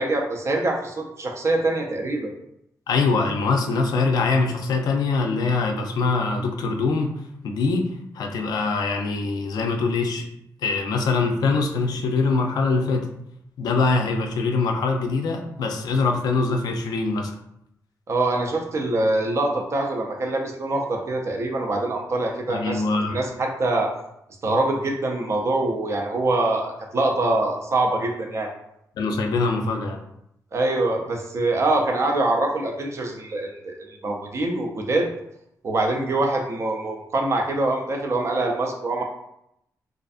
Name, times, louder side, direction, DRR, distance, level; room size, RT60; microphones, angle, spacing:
voice 1, 0.0-2.3 18.1-22.8 23.1-23.9 24.4-28.5 30.5-35.1 35.6-39.0, right 2 dB, 45° right, 2 dB, 0.4 m, -24 dB
voice 2, 2.9-7.1 7.4-10.3 10.6-13.1 13.6-17.3 22.5-23.2 29.0-30.0, left 3 dB, 80° left, 4 dB, 0.4 m, -23 dB
2.4 x 2.4 x 2.4 m, 0.77 s
wide cardioid pair, 115°, 7 cm